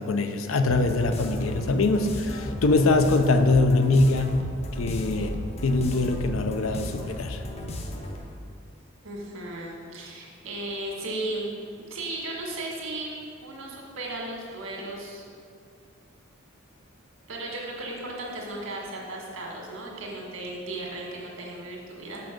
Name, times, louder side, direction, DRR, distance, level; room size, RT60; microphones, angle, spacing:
voice 1, 0.0-4.4 4.7-7.4, left 2 dB, 85° left, 8 dB, 0.5 m, -23 dB
sound 1, 0.7-8.3, left 1 dB, 30° left, 0.5 m, -35 dB
voice 2, 9.0-11.5 11.9-15.2 17.3-22.2, right 2 dB, 90° right, -2 dB, 1.7 m, -35 dB
6.3 x 5.5 x 5.2 m, 2.2 s
head